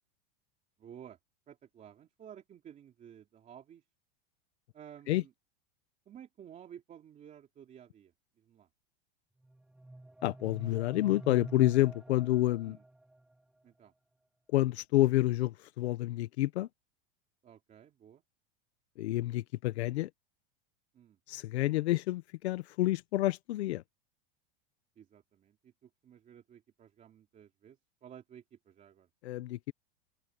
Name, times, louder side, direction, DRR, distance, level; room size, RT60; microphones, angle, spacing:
voice 1, 0.8-1.2 1.5-3.8 4.7-5.3 6.1-8.1 8.4-8.7 12.7-12.8 13.6-13.9 17.4-18.2 20.9-21.2 25.0-29.1, right 9 dB, 25° right, 2.7 m, -53 dB
sound 1, 9.4-13.4, right 1 dB, ahead, 0.3 m, -47 dB
voice 2, 10.2-12.8 14.5-16.7 19.0-20.1 21.3-23.8 29.2-29.7, left 16 dB, 90° left, 0.9 m, -29 dB
open air
supercardioid pair, 150°, 32 cm